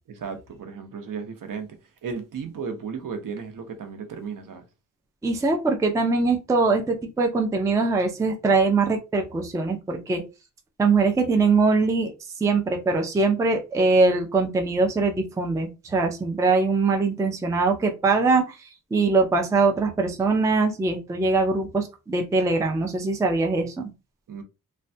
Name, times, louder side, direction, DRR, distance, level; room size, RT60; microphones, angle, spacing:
voice 1, 0.1-1.7 2.0-4.6 24.3-24.4, right 5 dB, 65° right, 0.7 m, -34 dB
voice 2, 5.2-10.2 10.8-12.1 12.4-23.9, right 3 dB, 10° right, 0.3 m, -22 dB
3.2 x 2.1 x 2.6 m
wide cardioid pair, 175°, 35 cm